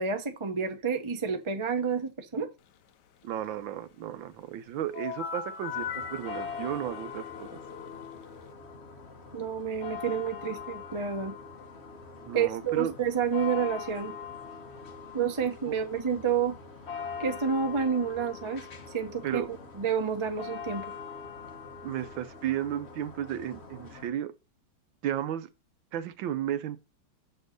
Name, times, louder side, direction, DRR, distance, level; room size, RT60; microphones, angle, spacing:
voice 1, 0.0-2.5 9.3-11.3 12.3-14.1 15.1-16.6 17.2-19.4 19.8-20.9, right 6 dB, 50° right, 0.3 m, -29 dB
voice 2, 3.2-7.6 12.3-12.9 15.7-15.8 19.2-19.5 21.8-24.3 25.0-25.5 25.9-26.8, right 11 dB, 70° right, 1.3 m, -34 dB
sound 1, 4.9-8.5, left 7 dB, 65° left, 1.1 m, -39 dB
sound 2, 5.7-24.1, left 6 dB, 35° left, 1.3 m, -43 dB
7.1 x 4.4 x 6.5 m
omnidirectional pair, 2.4 m